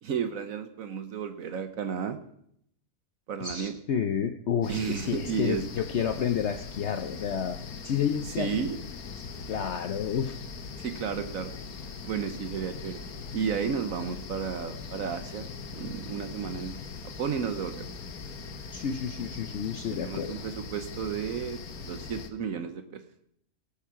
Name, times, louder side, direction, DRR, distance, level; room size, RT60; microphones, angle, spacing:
voice 1, 0.0-2.2 3.3-3.8 4.7-5.6 8.3-8.8 10.8-11.5 12.0-13.0 13.3-16.8 17.2-17.8 19.9-21.6 21.9-23.0, right 7 dB, 70° right, 9 dB, 1.3 m, -32 dB
voice 2, 3.4-7.6 7.8-8.6 9.5-10.4 18.7-20.4, left 8 dB, 60° left, 7 dB, 0.9 m, -30 dB
sound 1, 4.6-22.3, left 5 dB, 85° left, 1.5 m, -41 dB
18.5 x 7.3 x 5.7 m, 0.70 s
omnidirectional pair, 1.5 m